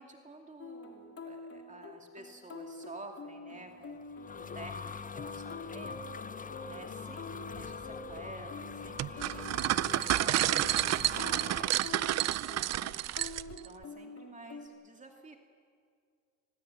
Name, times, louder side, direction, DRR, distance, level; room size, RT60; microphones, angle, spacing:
voice 1, 0.0-15.4, right 2 dB, 25° right, 3 dB, 2.4 m, -51 dB
sound 1, 0.6-14.7, left 3 dB, 50° left, 3.5 m, -47 dB
sound 2, 3.8-11.8, left 5 dB, 25° left, 0.8 m, -44 dB
sound 3, 9.0-13.7, right 13 dB, 60° right, 0.5 m, -30 dB
25.0 x 21.0 x 7.8 m, 2.2 s
cardioid pair, 90°, 30 cm